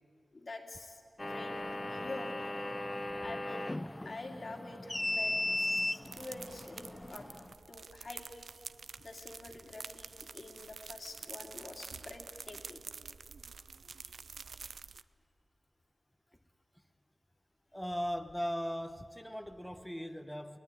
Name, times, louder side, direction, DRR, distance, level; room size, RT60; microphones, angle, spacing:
voice 1, 0.3-2.4 3.2-3.7 4.0-7.3 7.7-8.5 9.0-12.8 14.0-14.1, left 2 dB, 65° left, 2 dB, 2.7 m, -47 dB
sound 1, 1.2-7.5, left 1 dB, 25° left, 0.5 m, -37 dB
sound 2, 6.0-15.0, right 5 dB, 90° right, 0.5 m, -48 dB
voice 2, 17.7-20.6, equal, 5° left, 7 dB, 0.9 m, -38 dB
22.5 x 17.5 x 9.8 m, 2.5 s
cardioid pair, 50°, 0 cm